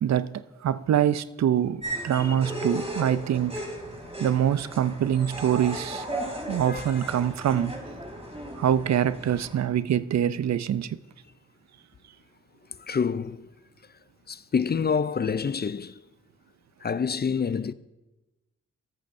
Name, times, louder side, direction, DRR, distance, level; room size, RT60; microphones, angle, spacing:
voice 1, 0.0-3.5 4.2-6.1 6.5-7.7 8.6-11.0, right 10 dB, 65° right, 0.5 m, -25 dB
sound 1, 1.8-9.7, right 1 dB, 20° right, 3.0 m, -36 dB
voice 2, 6.6-7.1 12.7-13.5 14.3-16.0 16.8-17.7, left 6 dB, 35° left, 0.4 m, -28 dB
20.0 x 8.6 x 2.6 m
supercardioid pair, 40°, 30 cm